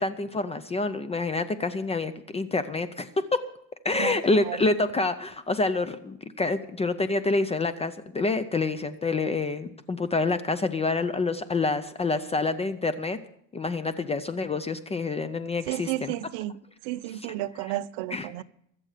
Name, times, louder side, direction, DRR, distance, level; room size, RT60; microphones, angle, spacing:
voice 1, 0.0-3.4 3.8-13.2 13.5-16.1 18.1-18.4, left 3 dB, 15° left, 0.4 m, -27 dB
voice 2, 15.7-18.4, right 15 dB, 70° right, 0.8 m, -32 dB
23.0 x 7.7 x 4.9 m
cardioid pair, 145°, 46 cm